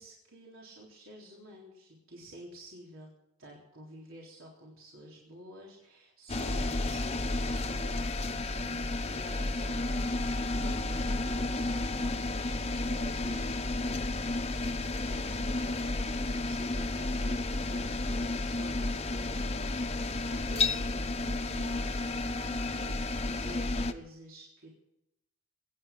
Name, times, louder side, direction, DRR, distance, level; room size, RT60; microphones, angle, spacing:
voice 1, 0.0-3.1 3.4-12.3 12.8-13.5 14.8-15.9 16.2-20.9 21.2-24.7, right 1 dB, 80° right, -3 dB, 3.7 m, -50 dB
sound 1, 6.3-23.9, left 2 dB, 30° left, 0.9 m, -32 dB
23.0 x 9.5 x 6.0 m, 0.82 s
head